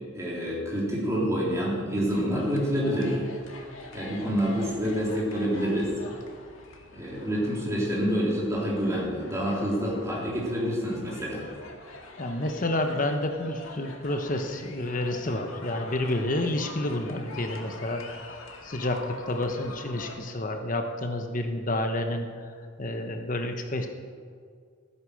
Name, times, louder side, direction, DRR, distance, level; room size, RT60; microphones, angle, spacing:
voice 1, 0.1-3.2 3.9-5.9 6.9-11.4, equal, 15° right, -5 dB, 3.3 m, -27 dB
sound 1, 2.1-20.2, left 3 dB, 75° left, 1.8 m, -45 dB
voice 2, 12.2-18.3 18.6-23.9, left 1 dB, 40° left, 5 dB, 1.0 m, -30 dB
13.5 x 9.9 x 6.4 m, 2.1 s
head